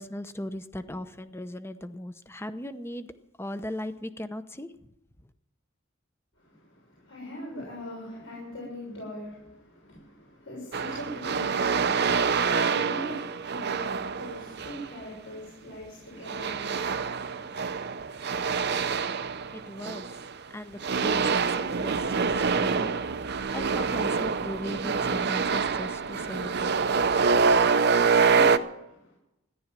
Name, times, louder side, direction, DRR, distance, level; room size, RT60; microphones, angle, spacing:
voice 1, 0.0-3.1 3.4-4.7 19.5-20.1 20.5-23.3 23.5-26.8, left 1 dB, 10° left, 11 dB, 0.8 m, -38 dB
voice 2, 6.3-18.2 28.0-29.2, equal, 70° left, -6 dB, 6.7 m, -42 dB
sound 1, 10.7-14.9 16.3-20.4 20.8-28.6, right 5 dB, 55° right, 0.7 m, -26 dB
14.5 x 11.0 x 7.5 m, 0.89 s
head